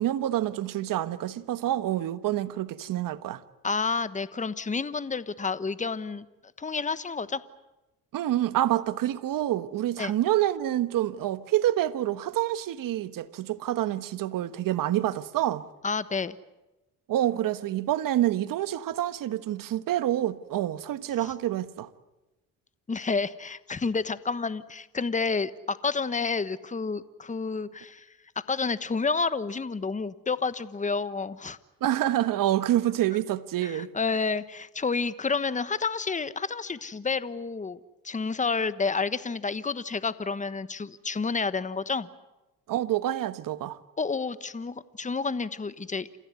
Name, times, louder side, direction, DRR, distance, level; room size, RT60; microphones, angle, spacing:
voice 1, 0.0-3.4 8.1-15.6 17.1-21.9 31.8-33.9 42.7-43.8, right 13 dB, 70° right, 1.4 m, -27 dB
voice 2, 3.6-6.3 6.6-7.4 10.0-10.1 15.8-16.4 21.2-21.3 22.9-28.1 28.5-31.6 33.6-42.1 44.0-46.1, left 4 dB, 20° left, 1.2 m, -30 dB
29.0 x 15.5 x 9.6 m
supercardioid pair, 75°, 35 cm